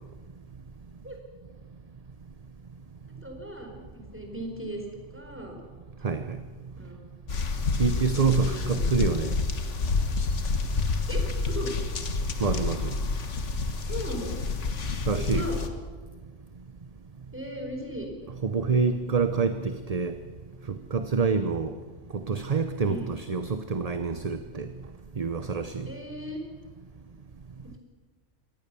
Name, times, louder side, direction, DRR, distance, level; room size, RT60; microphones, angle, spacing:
voice 1, 3.2-4.8 5.1-5.6 6.8-7.0 8.1-9.3 11.1-11.7 13.9-14.4 15.1-15.6 17.3-18.1 21.2-21.5 22.8-23.1 25.9-26.4 27.6-27.8, equal, 10° right, 2 dB, 4.6 m, -37 dB
voice 2, 6.0-6.4 7.8-9.4 12.4-13.0 15.1-15.5 18.4-20.2 20.7-21.7 22.1-24.7 25.2-25.9, right 5 dB, 35° right, 9 dB, 0.9 m, -27 dB
sound 1, 7.3-15.7, left 3 dB, 75° left, 1.8 m, -29 dB
24.0 x 18.0 x 7.0 m, 1.4 s
omnidirectional pair, 1.3 m